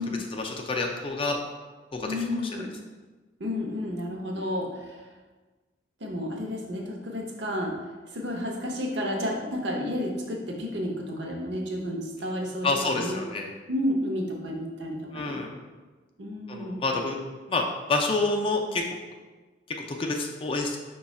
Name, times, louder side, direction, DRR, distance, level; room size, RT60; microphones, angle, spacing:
voice 1, 0.3-1.4 1.9-2.1 2.6-2.7 12.6-13.5 15.1-15.5 16.5-17.2 17.5-17.6 17.9-18.8 19.7-20.8, left 3 dB, 30° left, 2 dB, 0.3 m, -28 dB
voice 2, 2.0-2.7 3.4-5.1 6.0-7.7 8.1-13.2 13.7-15.5 16.2-16.8, left 1 dB, 65° right, 1 dB, 0.7 m, -31 dB
5.5 x 2.3 x 4.0 m, 1.3 s
head